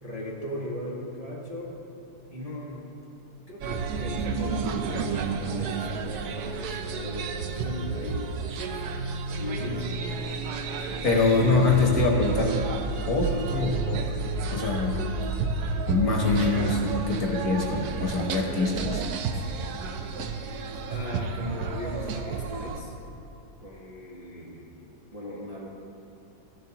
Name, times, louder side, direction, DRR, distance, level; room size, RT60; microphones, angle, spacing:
voice 1, 0.0-1.7 2.3-2.9 3.5-8.8 9.4-9.9 13.3-13.4 20.9-22.9 23.6-24.7 25.1-25.7, left 1 dB, 25° right, -5 dB, 0.9 m, -38 dB
sound 1, 3.6-22.8, right 4 dB, 70° right, 1.0 m, -31 dB
voice 2, 11.0-12.5 13.1-14.0 14.5-15.0 15.9-19.0, left 3 dB, 55° left, 0 dB, 1.4 m, -24 dB
14.5 x 10.5 x 2.9 m, 2.7 s
omnidirectional pair, 2.1 m